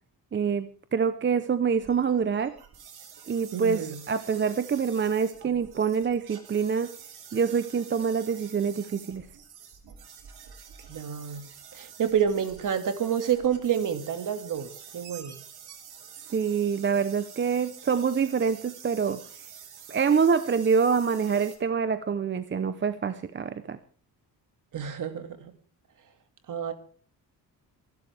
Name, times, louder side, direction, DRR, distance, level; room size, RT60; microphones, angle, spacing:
voice 1, 0.3-2.5 3.3-6.9 7.3-9.3 16.3-19.2 19.9-23.8, right 6 dB, 30° right, 11 dB, 0.8 m, -26 dB
sound 1, 1.8-21.6, right 8 dB, 75° right, 3.5 m, -48 dB
voice 2, 3.5-4.0 10.9-15.4 24.7-25.5 26.5-26.7, right 8 dB, 55° right, 9 dB, 2.3 m, -29 dB
27.0 x 12.0 x 3.5 m, 0.43 s
cardioid pair, 145°, 39 cm